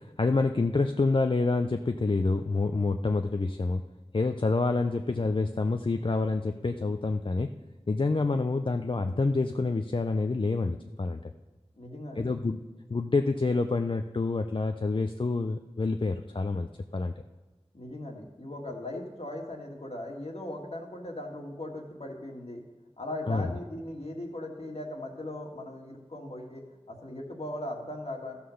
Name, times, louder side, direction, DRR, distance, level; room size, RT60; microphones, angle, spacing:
voice 1, 0.0-3.8 4.1-7.5 7.9-11.3 12.2-12.6 12.9-17.1 23.3-23.5, left 3 dB, 50° left, 6 dB, 0.5 m, -27 dB
voice 2, 11.8-12.3 17.7-22.6 23.0-28.4, left 1 dB, 65° left, 0 dB, 1.9 m, -39 dB
13.5 x 5.7 x 6.4 m, 1.2 s
wide cardioid pair, 45°, 11 cm